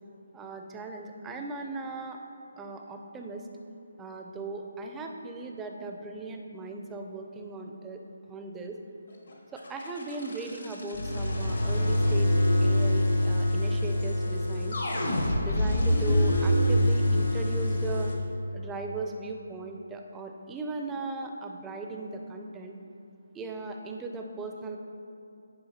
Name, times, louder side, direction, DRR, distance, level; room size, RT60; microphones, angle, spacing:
voice 1, 0.3-2.2 2.6-3.4 4.0-8.0 8.3-8.8 9.5-14.8 15.4-18.1 18.5-22.8 23.3-24.8, right 3 dB, 10° right, 3 dB, 0.4 m, -38 dB
sound 1, 9.6-18.2, left 1 dB, 75° left, 1.1 m, -25 dB
9.6 x 4.4 x 2.8 m, 2.8 s
figure-of-eight pair, 160°, 0 cm